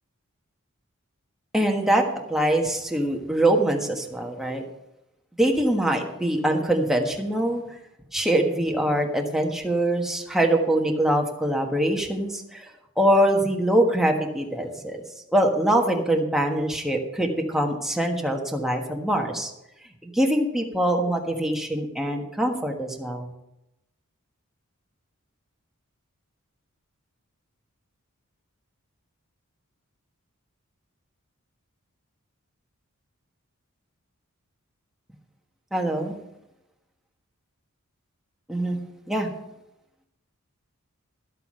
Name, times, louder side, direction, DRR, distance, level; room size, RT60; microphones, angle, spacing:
voice 1, 1.5-4.6 5.4-7.6 8.1-12.7 13.0-15.0 15.3-19.5 20.0-23.3 35.7-36.1 38.5-38.8 39.1-39.3, right 1 dB, ahead, 1 dB, 1.4 m, -23 dB
12.5 x 8.2 x 5.5 m, 0.87 s
head